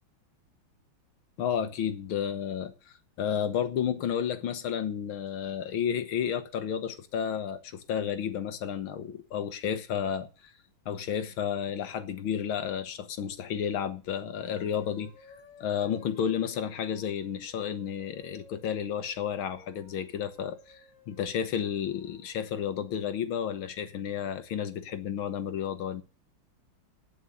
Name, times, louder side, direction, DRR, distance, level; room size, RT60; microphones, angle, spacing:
voice 1, 1.4-10.3 10.9-15.1 15.6-20.8 21.1-26.0, left 8 dB, 75° left, 1.9 m, -32 dB
sound 1, 14.3-22.4, left 3 dB, 20° left, 5.2 m, -56 dB
9.0 x 7.9 x 9.3 m
omnidirectional pair, 2.4 m